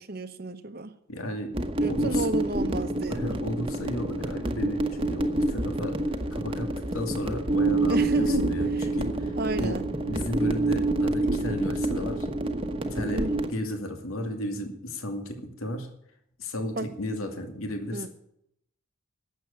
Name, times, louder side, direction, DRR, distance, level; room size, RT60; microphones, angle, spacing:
voice 1, 0.0-0.9 1.8-3.4 7.9-8.5 8.7-8.9 9.4-9.9 13.1-13.5 16.8-16.9 17.9-18.1, right 1 dB, 45° right, 1.0 m, -32 dB
voice 2, 1.1-1.5 1.9-2.3 3.1-6.0 6.3-9.3 9.6-9.8 10.1-12.3 12.8-15.9 16.4-18.1, left 1 dB, 85° left, 2.4 m, -34 dB
sound 1, 1.5-13.5, right 2 dB, 25° right, 1.1 m, -27 dB
12.0 x 8.0 x 9.6 m
head